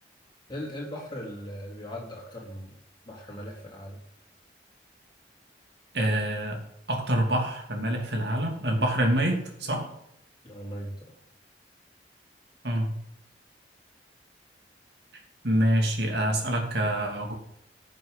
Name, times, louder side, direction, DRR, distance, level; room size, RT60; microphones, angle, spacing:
voice 1, 0.5-2.7 3.0-4.0 10.4-11.1, equal, 25° left, -4 dB, 3.9 m, -39 dB
voice 2, 5.9-6.6 6.9-9.9 12.6-12.9 15.4-17.3, right 1 dB, 70° right, 2 dB, 2.9 m, -26 dB
15.5 x 7.5 x 4.2 m, 0.77 s
head